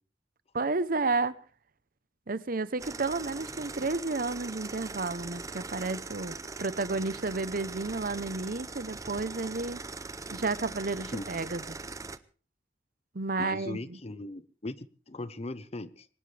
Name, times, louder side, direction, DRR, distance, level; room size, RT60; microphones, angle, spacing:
voice 1, 0.5-1.4 2.3-9.8 10.3-11.6 13.1-14.0, right 3 dB, 50° right, 0.9 m, -31 dB
sound 1, 2.8-12.2, right 3 dB, 20° right, 0.7 m, -41 dB
voice 2, 13.4-16.1, left 2 dB, 35° left, 0.8 m, -39 dB
22.0 x 19.0 x 3.4 m
head